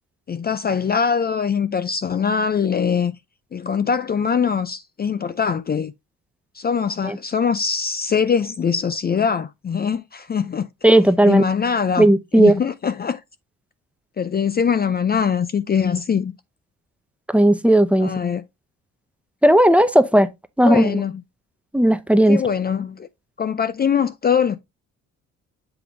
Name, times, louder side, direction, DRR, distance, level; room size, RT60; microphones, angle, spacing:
voice 1, 0.3-3.2 3.5-5.9 6.6-10.7 11.2-13.2 14.2-16.3 18.0-18.4 20.6-21.2 22.3-23.1 23.4-24.6, left 6 dB, 30° left, 0.5 m, -22 dB
voice 2, 10.8-11.4 12.0-12.5 17.3-18.1 19.4-20.3 20.6-21.0 21.7-22.4, right 1 dB, 5° right, 0.8 m, -15 dB
7.9 x 3.3 x 3.9 m
cardioid pair, 90°, 30 cm